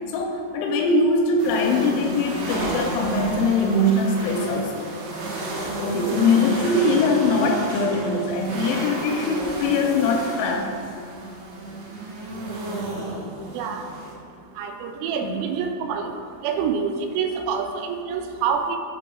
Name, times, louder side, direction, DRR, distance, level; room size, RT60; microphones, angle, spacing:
voice 1, 0.1-4.9 5.8-10.8 15.2-15.4, left 2 dB, 85° left, 2 dB, 2.7 m, -22 dB
sound 1, 1.4-14.1, right 1 dB, 70° right, 2.7 m, -31 dB
voice 2, 13.5-13.9 14.6-16.1 16.4-18.8, right 6 dB, 85° right, 4 dB, 3.1 m, -26 dB
6.9 x 3.1 x 5.9 m, 2.2 s
omnidirectional pair, 5.6 m